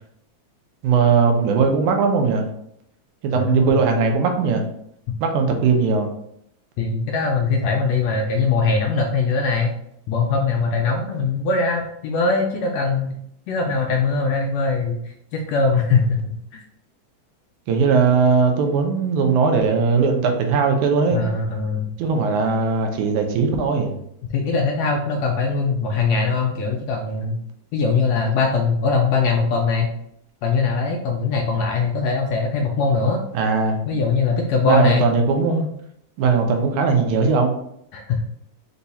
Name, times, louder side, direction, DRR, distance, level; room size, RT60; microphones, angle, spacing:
voice 1, 0.8-2.5 3.2-4.7 5.2-6.1 17.7-21.2 22.0-23.9 33.3-33.8 34.6-35.7 36.2-37.5, right 5 dB, 90° right, 4 dB, 2.2 m, -19 dB
voice 2, 3.3-3.8 5.1-5.2 6.8-9.7 10.1-13.2 13.5-15.0 15.3-16.6 21.1-21.9 24.3-27.4 27.7-29.9 30.4-33.2 33.9-35.1 37.9-38.2, left 4 dB, 80° left, 2 dB, 1.5 m, -21 dB
5.2 x 2.3 x 4.1 m, 0.73 s
omnidirectional pair, 3.4 m